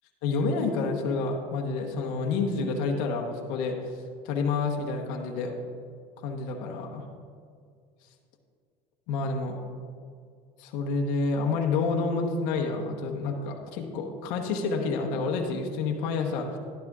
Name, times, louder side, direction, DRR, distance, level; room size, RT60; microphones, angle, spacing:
voice 1, 0.2-4.0 4.2-5.5 6.2-7.1 9.1-9.6 10.6-16.6, left 4 dB, 75° left, 1 dB, 1.2 m, -29 dB
11.5 x 11.5 x 2.4 m, 2.2 s
supercardioid pair, 110°, 17 cm